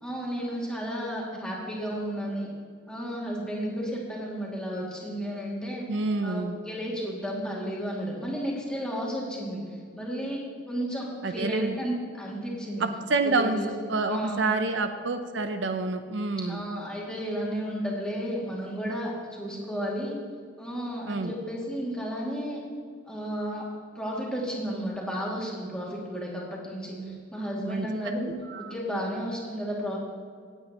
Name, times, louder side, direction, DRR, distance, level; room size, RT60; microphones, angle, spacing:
voice 1, 0.0-2.5 2.9-5.9 6.2-10.4 10.7-12.8 13.4-13.7 14.0-14.4 14.7-14.8 16.5-20.2 20.6-22.6 23.1-23.7 23.9-30.0, equal, 5° left, -4 dB, 2.4 m, -33 dB
voice 2, 5.9-6.6 11.2-11.8 12.8-13.6 13.9-16.6 21.1-21.3 27.0-27.2 27.6-27.9 28.5-28.7, right 3 dB, 65° right, 8 dB, 0.6 m, -28 dB
17.5 x 9.0 x 3.0 m, 2.1 s
head